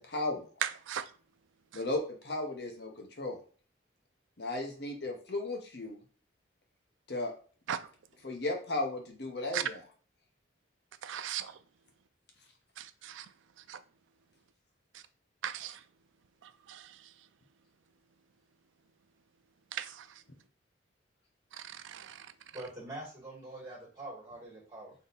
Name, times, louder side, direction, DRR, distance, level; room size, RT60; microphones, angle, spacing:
voice 1, 0.1-0.5 1.7-3.4 4.4-6.0 7.1-7.3 8.2-9.8, left 2 dB, 55° left, 0.8 m, -35 dB
voice 2, 0.6-1.0 7.7-7.8 9.5-9.6 11.0-11.5 12.8-13.3 13.7-13.8 15.4-15.8 16.7-16.9 19.7-20.1 21.8-22.3, right 9 dB, 75° right, 0.4 m, -37 dB
voice 3, 22.5-24.9, right 1 dB, 20° right, 1.8 m, -44 dB
3.6 x 2.8 x 4.0 m
head